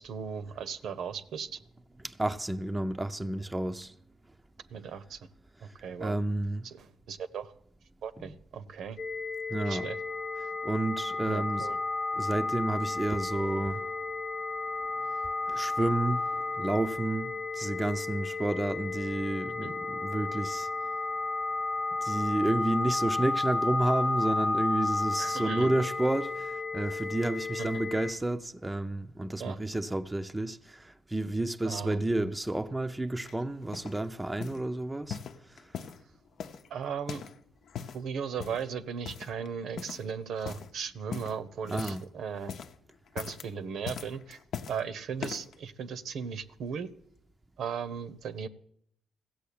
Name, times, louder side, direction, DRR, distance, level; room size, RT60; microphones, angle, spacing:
voice 1, 0.0-1.6 4.7-5.3 5.6-6.2 6.6-7.5 8.0-9.0 9.6-10.0 11.3-11.8 19.6-19.7 25.2-25.7 27.6-27.7 29.4-29.6 31.6-32.0 36.7-37.2 37.9-42.5 43.1-44.4 44.7-46.9 47.6-48.5, right 6 dB, 70° right, 0.9 m, -37 dB
voice 2, 2.0-3.9 6.0-6.7 8.2-8.4 9.5-9.8 10.6-11.7 12.1-13.9 15.5-16.3 16.6-20.7 22.0-35.2 41.7-42.0, right 2 dB, 10° right, 0.6 m, -31 dB
sound 1, 9.0-28.1, left 3 dB, 25° left, 1.1 m, -32 dB
sound 2, 33.3-34.0 34.4-34.7 35.1-36.0 36.4-37.4 37.6-38.0 38.4-38.7 39.0-39.5 39.8-40.1 40.4-40.7 41.1-42.1 42.4-42.8 43.1-43.5 43.9-44.8 45.2-45.6 46.2-46.3, left 7 dB, 70° left, 0.8 m, -40 dB
15.5 x 7.8 x 8.5 m
cardioid pair, 90°, 0 cm